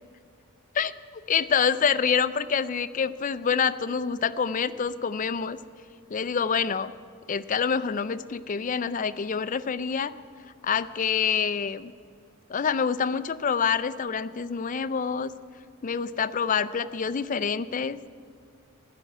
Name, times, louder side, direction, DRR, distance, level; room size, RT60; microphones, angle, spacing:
voice 1, 1.3-5.6 6.1-6.9 7.3-10.1 10.6-11.9 12.5-15.3 15.8-18.0, left 6 dB, 35° left, 13 dB, 0.4 m, -26 dB
13.0 x 11.0 x 9.7 m, 2.3 s
head